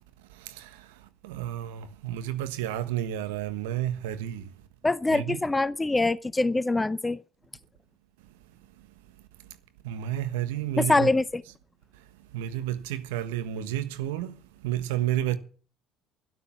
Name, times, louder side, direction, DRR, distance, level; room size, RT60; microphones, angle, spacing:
voice 1, 0.3-4.5 5.1-5.4 9.8-11.1 12.0-12.1 12.3-14.4 14.6-15.4, right 12 dB, 80° right, 1.4 m, -31 dB
voice 2, 4.8-7.2 10.8-11.4, left 2 dB, 15° left, 0.6 m, -24 dB
12.5 x 11.5 x 7.1 m
hypercardioid pair, 60°, 0 cm